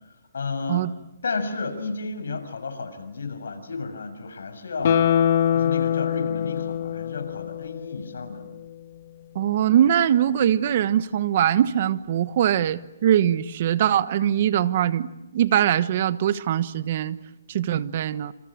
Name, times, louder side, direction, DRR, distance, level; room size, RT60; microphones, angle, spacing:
voice 1, 0.3-0.8 1.2-5.0 5.5-8.4, left 4 dB, 85° left, 7 dB, 6.9 m, -32 dB
Guitar, 4.8-8.1 8.5-8.6, left 9 dB, 50° left, 2.1 m, -23 dB
voice 2, 9.3-17.2 17.5-18.3, right 10 dB, 45° right, 15 dB, 1.2 m, -22 dB
28.5 x 28.0 x 7.5 m, 0.91 s
hypercardioid pair, 160°, 0 cm